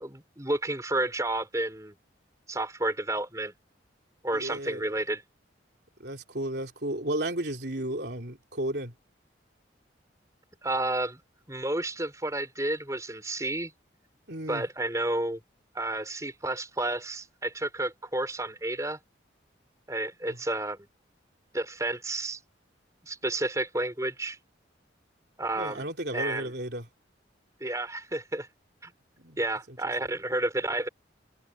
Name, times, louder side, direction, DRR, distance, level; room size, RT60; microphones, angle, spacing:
voice 1, 0.0-1.9 2.5-3.5 4.2-5.2 10.6-11.2 11.5-13.7 14.5-15.4 15.7-19.0 19.9-20.8 21.5-22.4 23.0-24.4 25.4-26.5 27.6-28.5 28.8-28.9 29.4-30.9, right 2 dB, 15° right, 4.3 m, -31 dB
voice 2, 4.3-4.9 6.0-8.9 14.3-14.7 20.3-20.4 25.6-26.9 29.2-29.4 29.7-29.8, right 1 dB, 60° right, 3.8 m, -33 dB
head